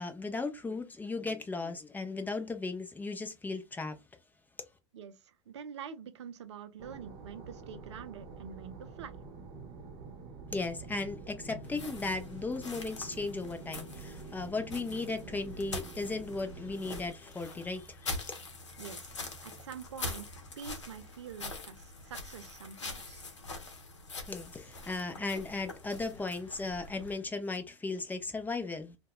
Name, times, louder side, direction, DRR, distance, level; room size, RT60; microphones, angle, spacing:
voice 1, 0.0-4.0 10.5-18.5 24.3-29.0, left 3 dB, 10° left, 0.5 m, -36 dB
voice 2, 4.9-9.2 18.8-19.2 19.4-23.2, right 7 dB, 70° right, 0.5 m, -46 dB
sound 1, 6.8-17.1, right 4 dB, 40° right, 0.7 m, -47 dB
sound 2, 11.6-27.1, left 2 dB, 85° left, 0.7 m, -44 dB
2.2 x 2.2 x 3.5 m
hypercardioid pair, 90°, 15 cm